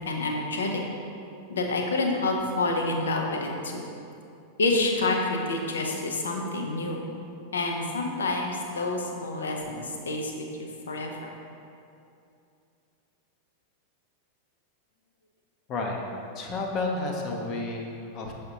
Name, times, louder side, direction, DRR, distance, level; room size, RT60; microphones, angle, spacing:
voice 1, 0.1-0.8 1.5-3.8 4.6-7.0 7.5-10.5 10.9-11.3, left 2 dB, 70° left, 1 dB, 0.7 m, -28 dB
voice 2, 15.7-16.0 16.4-18.3, left 2 dB, 35° left, 1 dB, 0.7 m, -31 dB
6.7 x 5.0 x 2.8 m, 2.6 s
figure-of-eight pair, 90°, 0 cm